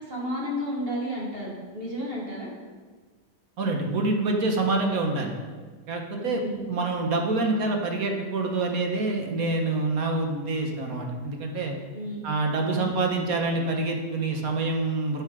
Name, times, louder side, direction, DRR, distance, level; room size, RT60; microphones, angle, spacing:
voice 1, 0.1-2.5 6.2-6.7 11.9-12.3 12.7-13.0, equal, 35° right, -3 dB, 1.9 m, -32 dB
voice 2, 3.6-5.3 5.9-6.4 6.7-11.7 12.2-15.2, right 3 dB, 60° right, 2 dB, 1.5 m, -26 dB
8.9 x 7.2 x 5.0 m, 1.4 s
omnidirectional pair, 1.8 m